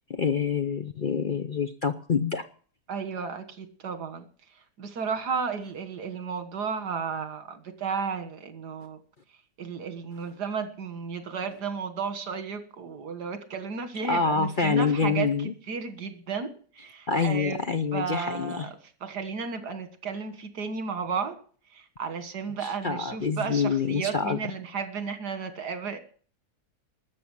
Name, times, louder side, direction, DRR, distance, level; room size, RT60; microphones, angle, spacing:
voice 1, 0.1-2.4 14.1-15.5 17.1-18.7 22.8-24.4, left 5 dB, 45° left, 9 dB, 0.7 m, -26 dB
voice 2, 2.9-4.3 4.8-9.0 9.6-17.6 17.9-18.8 19.0-21.4 21.7-26.0, right 5 dB, 80° right, 9 dB, 2.2 m, -33 dB
13.0 x 7.0 x 10.0 m, 0.43 s
omnidirectional pair, 1.7 m